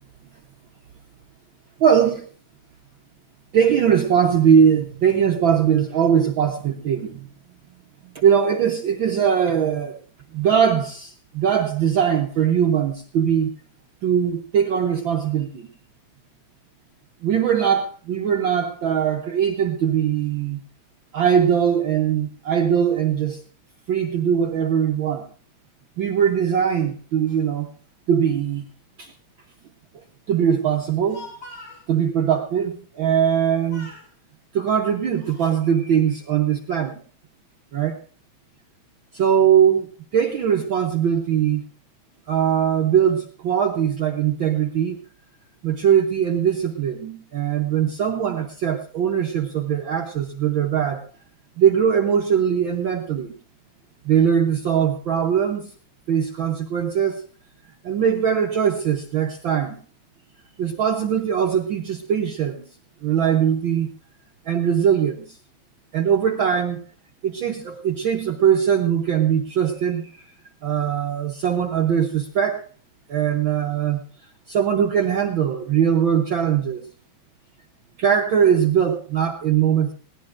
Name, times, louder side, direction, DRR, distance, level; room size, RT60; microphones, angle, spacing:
voice 1, 1.8-2.2 3.5-7.2 8.1-10.0 10.3-13.5 14.0-15.7 17.2-20.6 21.1-23.4 23.9-25.3 26.0-27.7 28.1-28.7 29.0-29.1 30.3-31.3 31.9-33.9 34.5-37.0 37.7-38.0 39.1-41.6 42.3-45.0 45.6-51.1 51.6-53.3 54.0-55.6 56.1-57.2 57.8-59.8 60.6-62.7 63.0-63.9 64.5-65.4 65.9-66.8 67.2-70.2 70.6-72.7 73.1-74.0 74.5-76.9 78.0-79.9, right 8 dB, 75° right, 3 dB, 1.1 m, -21 dB
Speech, 30.8-31.9 33.2-33.4 33.7-34.1 34.8-35.6, left 1 dB, 35° left, 4.8 m, -43 dB
20.5 x 17.5 x 2.5 m, 0.40 s
omnidirectional pair, 3.4 m